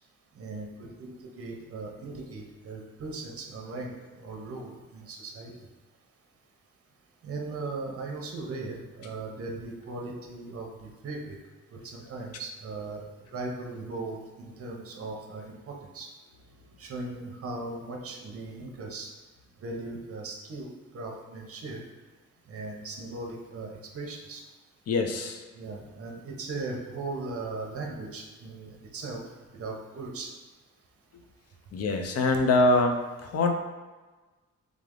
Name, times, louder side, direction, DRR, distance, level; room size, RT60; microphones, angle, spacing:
voice 1, 0.4-5.5 7.2-11.4 11.7-13.0 13.3-16.1 16.8-19.1 19.6-20.7 20.9-21.8 22.5-24.4 25.5-29.2 29.5-30.3, right 3 dB, 50° right, 1 dB, 0.8 m, -38 dB
voice 2, 24.9-25.4 31.7-33.5, left 2 dB, 55° left, 5 dB, 0.5 m, -24 dB
3.7 x 3.3 x 3.7 m, 1.3 s
wide cardioid pair, 165°, 29 cm